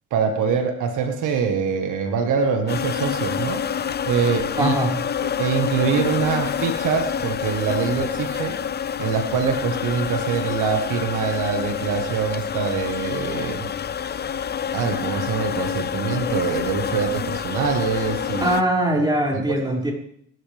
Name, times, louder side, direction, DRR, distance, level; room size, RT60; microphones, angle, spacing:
voice 1, 0.1-4.8 5.2-8.6 9.0-13.7 14.7-18.6 19.3-19.8, right 6 dB, 85° right, 5 dB, 1.8 m, -24 dB
sound 1, 2.7-18.6, left 8 dB, 35° left, 0.6 m, -27 dB
voice 2, 4.6-4.9 18.4-19.9, right 1 dB, 15° right, -3 dB, 6.4 m, -21 dB
25.5 x 12.5 x 3.6 m, 0.68 s
cardioid pair, 90°, 30 cm